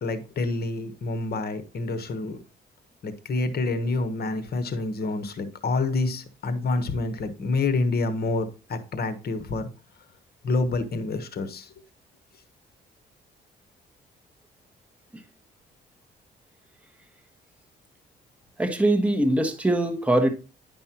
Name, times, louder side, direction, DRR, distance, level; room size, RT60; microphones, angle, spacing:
voice 1, 0.0-2.4 3.0-9.7 10.4-11.7, left 3 dB, 50° left, 1.2 m, -28 dB
voice 2, 18.6-20.3, right 1 dB, 5° right, 1.3 m, -22 dB
10.0 x 5.4 x 2.9 m
cardioid pair, 90°, 20 cm